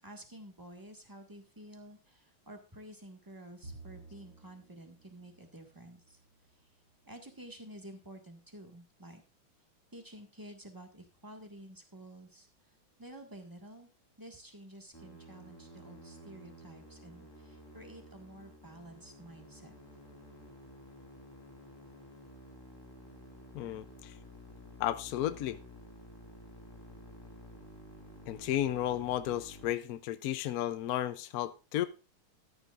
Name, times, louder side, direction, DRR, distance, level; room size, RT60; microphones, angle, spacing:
voice 1, 0.0-6.2 7.0-9.2 9.9-12.5 13.0-13.9 14.2-19.7, right 1 dB, 10° right, 1.4 m, -51 dB
Bowed string instrument, 3.6-7.1, right 2 dB, 60° right, 4.2 m, -54 dB
Musical instrument, 14.9-29.7, equal, 10° left, 2.0 m, -52 dB
voice 2, 23.5-24.1 24.8-25.6 28.3-31.8, left 12 dB, 85° left, 0.8 m, -33 dB
13.5 x 10.0 x 2.5 m
omnidirectional pair, 2.4 m